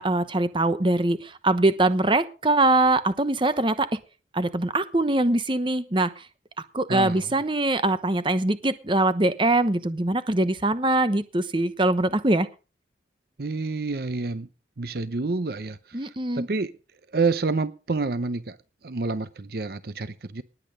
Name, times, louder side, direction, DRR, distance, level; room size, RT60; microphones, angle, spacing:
voice 1, 0.0-3.9 4.3-6.1 6.7-12.5 15.9-16.5, right 2 dB, 30° right, 1.0 m, -23 dB
voice 2, 6.9-7.3 13.4-14.5 14.8-16.7 17.1-18.6 18.8-20.4, right 3 dB, 60° right, 0.7 m, -28 dB
19.0 x 8.5 x 5.3 m
head